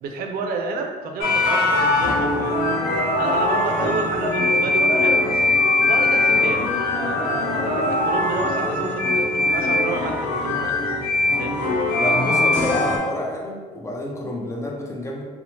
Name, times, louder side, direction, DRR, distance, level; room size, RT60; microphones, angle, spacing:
voice 1, 0.0-2.8 3.2-5.2 5.8-10.7 11.4-11.6, right 3 dB, 60° right, 4 dB, 0.4 m, -29 dB
sound 1, 1.2-13.0, left 2 dB, 85° left, 0.6 m, -21 dB
voice 2, 12.0-15.2, left 1 dB, 15° left, -1 dB, 0.5 m, -29 dB
2.9 x 2.1 x 2.8 m, 1.4 s
cardioid pair, 110°, 17 cm